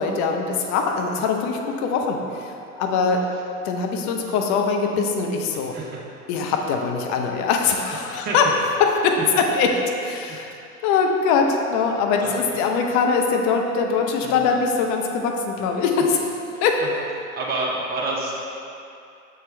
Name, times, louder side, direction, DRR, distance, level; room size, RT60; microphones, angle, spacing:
voice 1, 0.0-3.2 3.6-5.7 6.3-8.4 8.8-9.7 10.0-10.5 10.8-16.3 16.6-16.8, left 5 dB, 40° left, 2 dB, 0.7 m, -22 dB
voice 2, 5.5-6.0 8.0-8.5 10.3-10.4 10.7-10.8 12.2-12.6 14.2-14.4 16.5-16.9 17.2-18.4, right 2 dB, 20° right, -4 dB, 0.8 m, -30 dB
6.6 x 4.4 x 3.3 m, 2.6 s
figure-of-eight pair, 85°, 44 cm